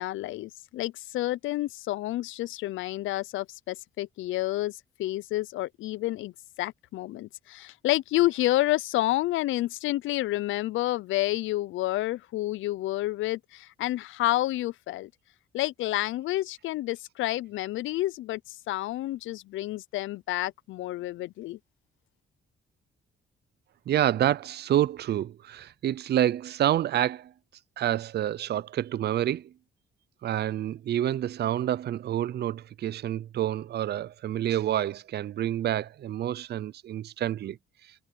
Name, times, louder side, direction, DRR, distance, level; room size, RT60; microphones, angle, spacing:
voice 1, 0.0-6.3 6.6-15.1 15.5-21.6, left 16 dB, 80° left, 0.5 m, -29 dB
voice 2, 23.9-27.3 27.8-29.5 30.2-37.6, right 12 dB, 55° right, 0.5 m, -28 dB
cardioid pair, 90°, 20 cm